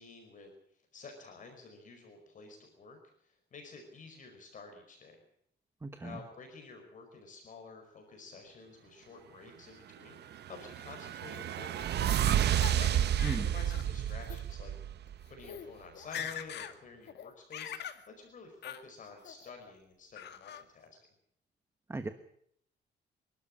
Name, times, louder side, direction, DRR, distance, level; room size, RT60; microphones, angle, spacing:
voice 1, 0.0-5.2 6.0-14.9 15.3-21.0, left 4 dB, 45° left, 3 dB, 5.0 m, -51 dB
voice 2, 5.8-6.1 13.2-13.4 21.9-22.1, right 3 dB, 15° right, 9 dB, 1.2 m, -36 dB
sound 1, 10.3-15.3, right 10 dB, 65° right, 1.0 m, -30 dB
Laughter, 11.3-12.9 13.2-13.9 14.2-14.4 15.1-15.2 15.4-15.7 15.9-16.7 17.1-18.0 18.6-18.8 19.2-19.7 20.1-20.6, left 9 dB, 65° left, 2.2 m, -43 dB
28.0 x 13.0 x 8.6 m, 0.72 s
cardioid pair, 165°, 19 cm